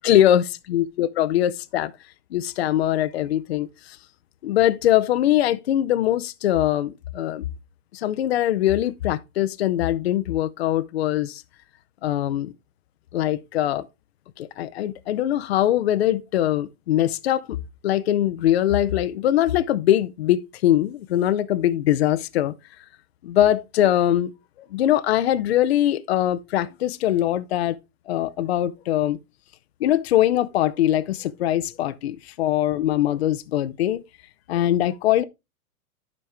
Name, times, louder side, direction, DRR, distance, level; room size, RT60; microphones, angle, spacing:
voice 1, 0.0-1.9 2.3-4.0 4.4-7.4 7.9-11.4 12.0-12.5 13.1-13.9 14.4-17.6 17.8-22.5 23.2-24.3 24.7-27.8 28.1-29.2 29.8-34.0 34.5-35.2, left 12 dB, 45° left, 0.5 m, -22 dB
11.5 x 5.3 x 3.3 m
hypercardioid pair, 170°, 44 cm